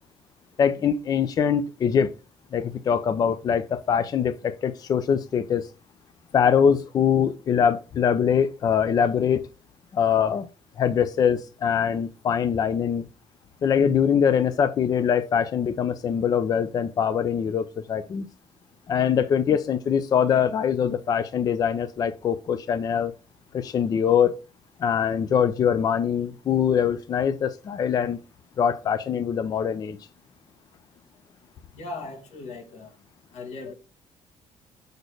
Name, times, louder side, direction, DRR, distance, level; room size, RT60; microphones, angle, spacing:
voice 1, 0.6-2.1 2.5-5.7 6.3-9.4 9.9-10.5 10.8-13.1 13.6-18.3 18.9-23.1 23.5-24.4 24.8-28.2 28.6-30.0, left 7 dB, 35° left, 0.4 m, -23 dB
voice 2, 31.7-32.9 33.3-33.7, left 3 dB, 90° left, 1.8 m, -38 dB
6.6 x 4.3 x 4.7 m
cardioid pair, 175°, 11 cm